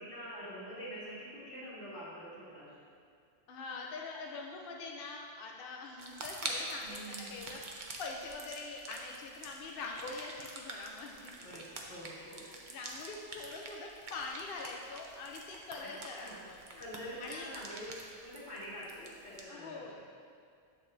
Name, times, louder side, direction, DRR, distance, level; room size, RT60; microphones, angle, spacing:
voice 1, 0.0-2.7 6.8-7.6 11.3-12.4 15.8-16.4 16.8-20.0, equal, 80° left, -8 dB, 2.2 m, -46 dB
voice 2, 3.5-11.5 12.3-16.8 17.2-17.5 19.5-20.0, left 3 dB, 60° left, 0 dB, 0.7 m, -44 dB
sound 1, 6.0-19.4, right 2 dB, 50° right, 0.8 m, -46 dB
7.8 x 7.2 x 2.6 m, 2.2 s
omnidirectional pair, 1.2 m